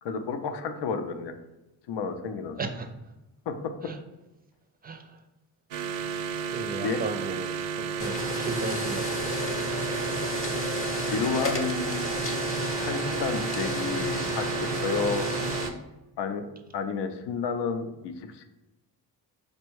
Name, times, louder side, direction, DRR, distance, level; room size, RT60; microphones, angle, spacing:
voice 1, 0.0-1.3 1.9-2.6 3.5-3.7 6.8-7.0 11.0-12.1 12.7-15.3 16.2-16.5 16.7-18.4, left 5 dB, 75° left, 8 dB, 0.6 m, -31 dB
voice 2, 2.5-2.9 3.8-4.0 4.8-5.2 6.5-7.5 7.8-9.4, right 3 dB, 20° right, 6 dB, 0.4 m, -36 dB
sound 1, 5.7-15.7, right 6 dB, 90° right, 0.6 m, -32 dB
sound 2, 8.0-15.7, left 2 dB, 30° left, 0.8 m, -32 dB
5.3 x 2.2 x 4.5 m, 1.0 s
cardioid pair, 105°, 43 cm